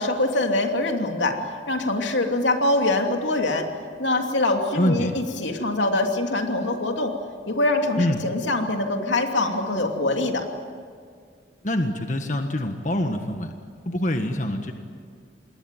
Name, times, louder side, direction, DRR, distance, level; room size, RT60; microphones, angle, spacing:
voice 1, 0.0-1.4 1.7-3.6 4.0-7.1 7.5-10.4, left 2 dB, 85° left, 3 dB, 2.9 m, -24 dB
voice 2, 4.7-5.1 8.0-8.2 11.6-13.5 13.9-14.7, left 1 dB, 40° left, 5 dB, 1.6 m, -25 dB
27.5 x 21.0 x 9.3 m, 2.1 s
head